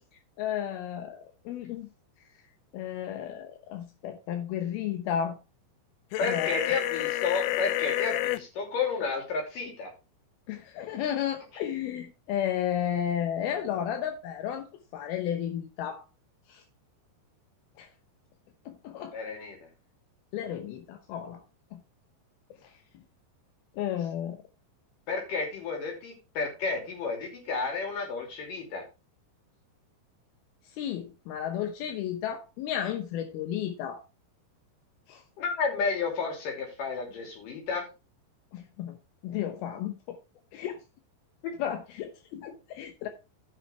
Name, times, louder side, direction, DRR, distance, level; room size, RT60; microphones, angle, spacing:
voice 1, 0.4-1.9 2.7-5.4 6.2-6.6 10.5-14.7 14.9-16.0 16.5-16.6 17.8-17.9 18.7-19.2 20.3-21.4 21.7-21.8 22.6-22.7 23.7-24.4 30.7-34.0 35.1-35.2 38.5-39.0 39.2-40.2 40.5-40.8 41.6-43.1, left 10 dB, 75° left, 2.5 m, -33 dB
sound 1, 6.1-8.4, left 15 dB, 90° left, 2.2 m, -29 dB
voice 2, 6.2-9.9 19.1-19.6 25.1-28.8 35.4-37.9 41.4-41.5, left 4 dB, 50° left, 4.3 m, -31 dB
14.5 x 5.8 x 3.4 m
omnidirectional pair, 5.3 m